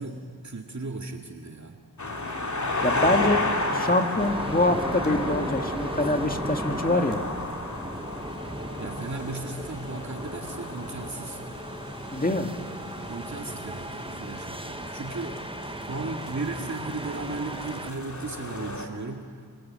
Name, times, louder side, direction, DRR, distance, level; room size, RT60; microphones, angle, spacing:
voice 1, 0.0-1.8 8.8-11.4 13.1-15.4 15.7-19.5, right 3 dB, 45° right, 2 dB, 2.2 m, -36 dB
sound 1, 2.0-18.9, left 2 dB, 50° left, 3.0 m, -33 dB
voice 2, 2.8-3.4 3.7-7.2 12.1-12.5, left 2 dB, 25° left, 4 dB, 2.1 m, -25 dB
sound 2, 4.2-17.9, right 1 dB, 15° right, 1.1 m, -37 dB
29.5 x 26.5 x 7.6 m, 2.1 s
wide cardioid pair, 75°, 38 cm